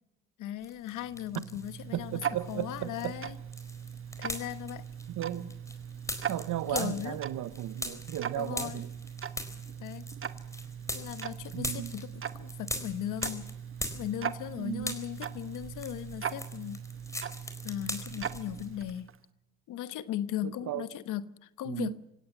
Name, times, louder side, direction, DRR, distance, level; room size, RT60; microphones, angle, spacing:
voice 1, 0.4-3.4 4.2-4.9 6.7-7.2 8.4-8.8 9.8-10.1 10.9-13.5 13.9-16.8 17.6-19.1 19.7-22.0, left 12 dB, 85° left, 1.2 m, -37 dB
sound 1, 0.6-1.8 2.1-14.5 14.8-18.7, left 1 dB, 10° left, 4.4 m, -41 dB
Tick-tock, 0.9-19.2, right 8 dB, 45° right, 1.3 m, -40 dB
voice 2, 1.9-3.2 5.1-5.5 6.3-8.9 11.5-11.9 14.6-14.9 20.4-20.9 21.6-22.0, right 13 dB, 80° right, 1.2 m, -35 dB
27.0 x 16.5 x 7.3 m
cardioid pair, 90°, 30 cm